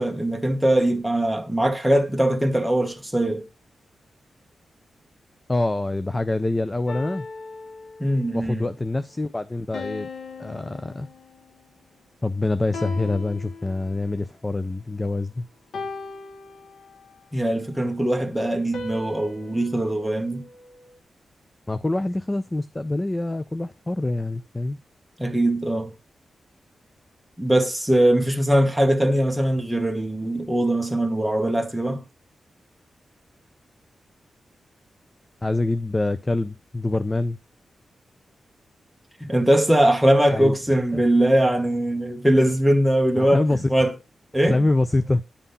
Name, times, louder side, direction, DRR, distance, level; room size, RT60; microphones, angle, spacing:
voice 1, 0.0-3.4 8.0-8.7 17.3-20.5 25.2-25.9 27.4-32.0 39.2-43.9 44.3-44.7, right 1 dB, ahead, 1.2 m, -21 dB
voice 2, 5.5-7.3 8.3-10.1 10.4-11.1 12.2-15.4 21.7-24.8 35.4-37.4 40.3-40.5 40.9-41.0 43.2-43.7 44.5-45.2, left 2 dB, 20° left, 0.4 m, -25 dB
sound 1, 6.9-8.4 9.7-11.6 12.7-14.2 15.7-17.2 18.7-21.0, left 4 dB, 80° left, 1.5 m, -38 dB
10.0 x 3.7 x 5.5 m
wide cardioid pair, 125°, 0 cm